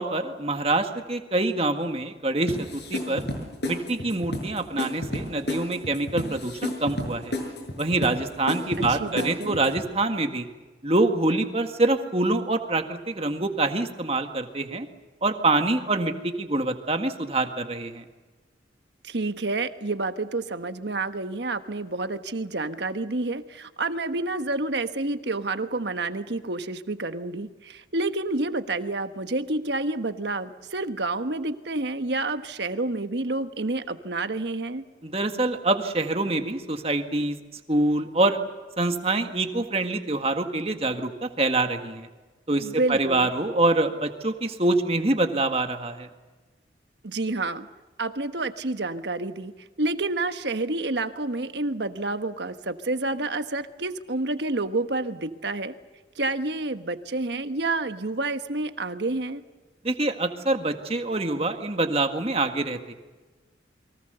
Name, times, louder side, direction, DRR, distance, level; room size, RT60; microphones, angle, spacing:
voice 1, 0.0-3.3 3.6-7.3 7.8-10.5 10.8-14.9 15.2-18.0 35.0-37.4 37.7-38.4 38.8-42.1 42.5-46.1 59.8-62.9, right 2 dB, 30° right, 6 dB, 1.8 m, -25 dB
sound 1, 2.5-9.9, left 1 dB, 65° left, 6.7 m, -32 dB
voice 2, 8.9-9.6 19.0-34.8 42.6-43.3 47.0-47.7 48.0-49.5 49.8-55.7 56.2-59.4, right 2 dB, 70° right, 9 dB, 1.3 m, -29 dB
29.5 x 23.5 x 6.9 m, 1.3 s
head